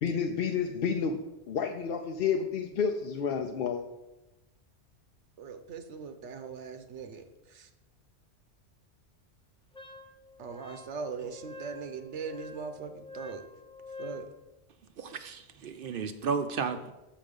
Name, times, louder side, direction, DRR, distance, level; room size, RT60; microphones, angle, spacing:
voice 1, 0.0-3.8, left 6 dB, 60° left, 3 dB, 0.7 m, -30 dB
voice 2, 5.4-7.7 10.4-13.5 14.0-14.2, right 5 dB, 85° right, 8 dB, 1.1 m, -40 dB
Wind instrument woodwind instrument, 9.7-14.3, left 2 dB, 5° left, 0.6 m, -47 dB
voice 3, 15.0-16.9, right 5 dB, 60° right, 9 dB, 0.7 m, -33 dB
7.4 x 5.2 x 5.2 m, 0.99 s
omnidirectional pair, 1.2 m